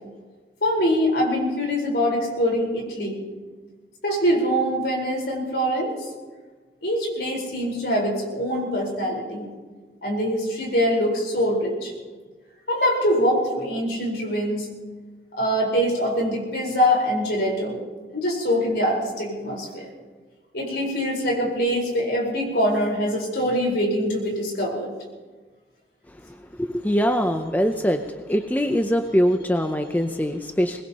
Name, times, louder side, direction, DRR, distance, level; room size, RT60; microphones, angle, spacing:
voice 1, 0.6-3.2 4.0-6.0 6.8-9.5 10.0-11.9 12.7-14.7 15.4-17.8 18.1-19.8 20.5-24.9, equal, 70° left, -1 dB, 4.5 m, -23 dB
voice 2, 26.1-30.8, equal, 10° left, 6 dB, 0.6 m, -23 dB
23.0 x 20.0 x 2.9 m, 1.4 s
head